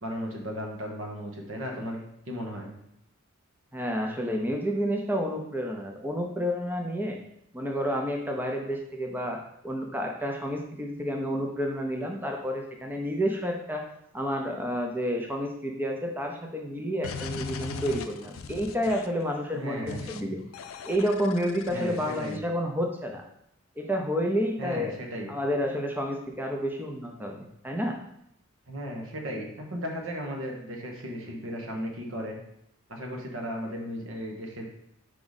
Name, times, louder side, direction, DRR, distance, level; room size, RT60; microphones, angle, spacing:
voice 1, 0.0-2.7 17.7-17.9 19.5-20.0 21.7-22.4 24.6-25.3 28.7-32.4 32.9-34.7, equal, 75° right, 1 dB, 1.3 m, -35 dB
voice 2, 3.7-7.2 7.5-13.9 14.1-20.4 20.8-23.2 23.8-24.9 25.3-28.0, equal, 10° right, 2 dB, 0.6 m, -30 dB
sound 1, 17.0-19.2 19.9-20.2 20.5-22.4, left 5 dB, 80° left, 0.4 m, -38 dB
4.9 x 4.8 x 4.1 m, 0.76 s
head